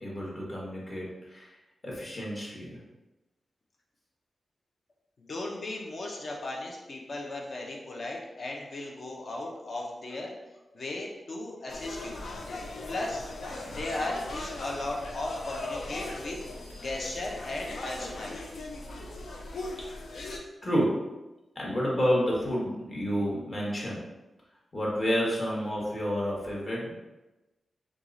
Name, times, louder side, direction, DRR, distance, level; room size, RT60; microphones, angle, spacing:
voice 1, 0.0-1.5 1.8-2.8 19.8-20.0 20.6-21.1 21.5-24.0 24.7-27.0, equal, 35° left, -4 dB, 1.2 m, -30 dB
voice 2, 5.2-10.4 10.7-12.2 12.9-13.3 13.6-16.4 16.8-18.4, left 2 dB, 50° left, 0 dB, 0.8 m, -36 dB
sound 1, 11.7-20.4, left 2 dB, 85° left, 0.6 m, -39 dB
4.6 x 2.4 x 3.9 m, 1.1 s
wide cardioid pair, 160°, 0 cm